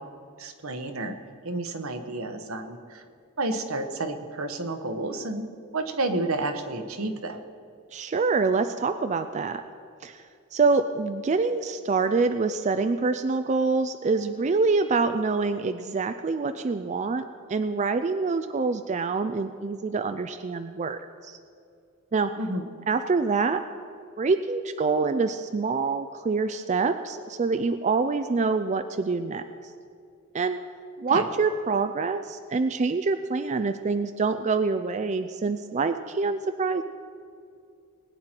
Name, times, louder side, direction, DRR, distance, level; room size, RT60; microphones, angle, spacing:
voice 1, 0.4-1.1 1.4-3.0 3.4-5.5 5.7-7.4 22.4-22.7 31.1-31.3, right 2 dB, 80° right, 7 dB, 1.2 m, -30 dB
voice 2, 7.9-9.6 10.0-10.2 10.5-21.4 22.1-22.3 22.9-23.6 24.2-29.4 30.3-30.6 31.0-36.8, right 4 dB, 35° right, 9 dB, 0.4 m, -26 dB
20.5 x 9.3 x 4.5 m, 2.4 s
head